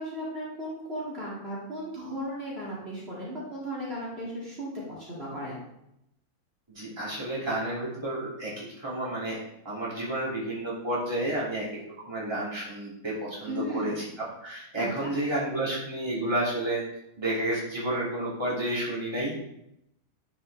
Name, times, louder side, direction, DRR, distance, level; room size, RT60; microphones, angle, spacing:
voice 1, 0.0-5.7 13.5-14.1 14.8-15.1, equal, 40° right, -7 dB, 2.6 m, -36 dB
voice 2, 6.7-9.4 9.6-11.6 12.0-14.0 14.4-16.8 17.2-19.3, right 1 dB, 15° right, -7 dB, 2.5 m, -31 dB
10.5 x 4.9 x 3.3 m, 0.81 s
omnidirectional pair, 1.6 m